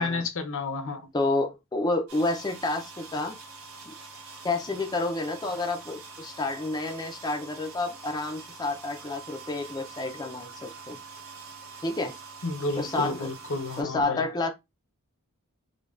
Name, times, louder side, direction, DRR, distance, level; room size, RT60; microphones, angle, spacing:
voice 1, 0.0-1.0 12.4-14.2, left 3 dB, 60° left, 0.7 m, -31 dB
voice 2, 1.1-3.4 3.9-4.0 4.4-11.0 11.8-12.2 12.7-13.3 13.8-14.5, left 2 dB, 20° left, 0.4 m, -29 dB
sound 1, 2.1-13.8, right 4 dB, 65° right, 1.4 m, -45 dB
5.1 x 2.2 x 2.4 m
head